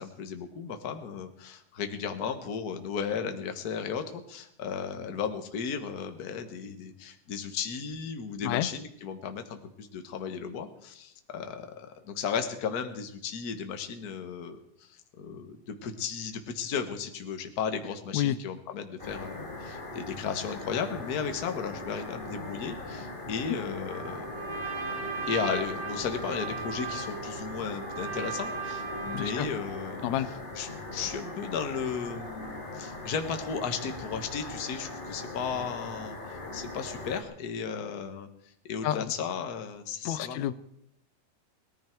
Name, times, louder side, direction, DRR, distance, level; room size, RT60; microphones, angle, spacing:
voice 1, 0.0-24.5 25.3-30.0 30.5-40.4, left 6 dB, 45° left, 7 dB, 1.3 m, -35 dB
sound 1, 19.0-37.2, left 2 dB, 20° left, 2.1 m, -40 dB
Trumpet, 23.9-29.6, right 5 dB, 75° right, 8.7 m, -37 dB
voice 2, 29.1-29.5 30.0-30.3 38.8-39.1 40.1-40.5, left 12 dB, 75° left, 14 dB, 1.9 m, -29 dB
18.5 x 14.0 x 4.6 m, 0.76 s
omnidirectional pair, 3.6 m